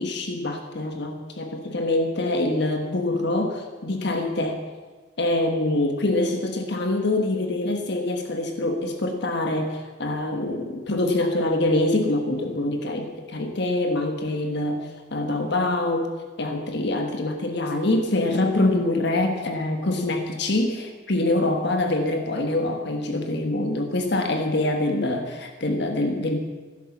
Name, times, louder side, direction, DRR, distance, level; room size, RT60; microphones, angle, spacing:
voice 1, 0.0-4.6 5.2-16.1 16.4-26.4, left 2 dB, 55° left, 5 dB, 1.4 m, -25 dB
15.5 x 11.0 x 7.2 m, 1.4 s
head